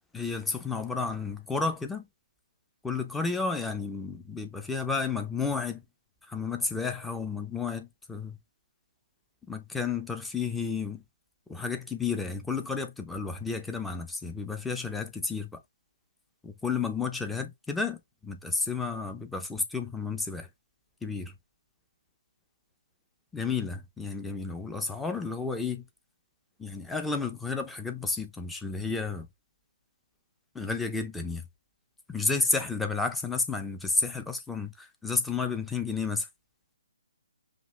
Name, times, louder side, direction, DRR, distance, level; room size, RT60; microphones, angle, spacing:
voice 1, 0.1-2.1 2.8-5.8 6.3-8.4 9.5-11.0 11.5-15.6 16.4-18.0 18.2-20.5 21.0-21.3 23.3-25.8 26.6-29.3 30.5-31.5 32.1-36.3, left 4 dB, 5° left, 0.6 m, -31 dB
5.2 x 2.4 x 3.2 m
figure-of-eight pair, 135°, 0 cm